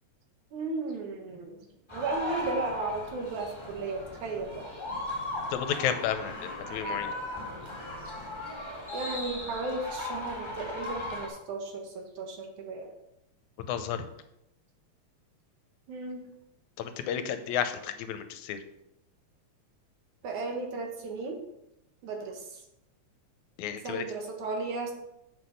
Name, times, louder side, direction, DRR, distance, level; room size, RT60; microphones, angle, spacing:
voice 1, 0.5-1.6 1.9-4.7 8.9-13.0 15.9-16.3 20.2-21.4 22.0-22.6 23.8-24.9, right 3 dB, 80° right, 2 dB, 2.9 m, -35 dB
sound 1, 1.9-11.3, left 1 dB, 10° left, 1.6 m, -37 dB
voice 2, 5.5-7.1 13.7-14.1 16.8-18.6 23.6-24.0, left 9 dB, 80° left, 9 dB, 2.1 m, -32 dB
7.5 x 6.1 x 6.5 m, 0.85 s
omnidirectional pair, 3.4 m